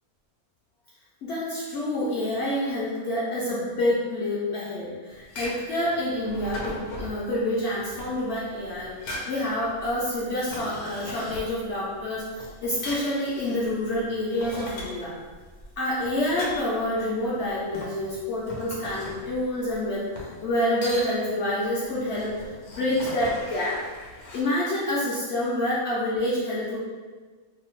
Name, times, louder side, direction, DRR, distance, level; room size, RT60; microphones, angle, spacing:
voice 1, 1.2-8.9 9.3-15.1 15.8-20.1 20.4-22.4 22.7-23.8 24.3-26.8, left 1 dB, 65° left, -7 dB, 0.7 m, -27 dB
sound 1, 5.1-24.4, left 1 dB, 90° left, 1.1 m, -40 dB
2.7 x 2.0 x 2.9 m, 1.4 s
omnidirectional pair, 1.5 m